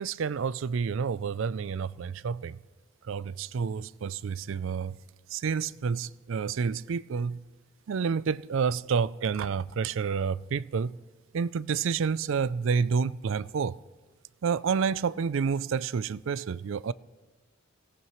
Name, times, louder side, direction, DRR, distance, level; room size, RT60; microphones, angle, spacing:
voice 1, 0.0-2.6 3.1-5.0 5.3-7.4 7.9-11.0 11.3-13.8 14.4-16.9, right 6 dB, 65° right, 0.4 m, -29 dB
25.0 x 18.0 x 3.1 m
head